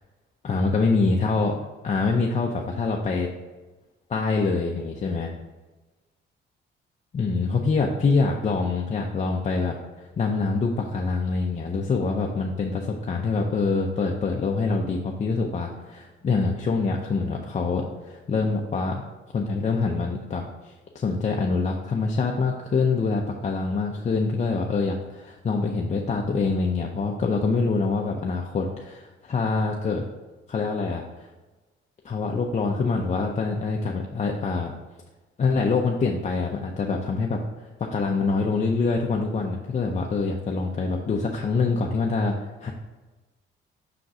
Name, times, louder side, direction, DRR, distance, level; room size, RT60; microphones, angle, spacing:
voice 1, 0.4-3.3 4.1-5.3 7.1-19.0 19.3-30.0 30.5-31.3 32.0-34.7 35.4-37.4 37.8-42.7, left 4 dB, 35° left, 0 dB, 0.6 m, -25 dB
5.8 x 3.9 x 4.9 m, 1.2 s
cardioid pair, 90°, 20 cm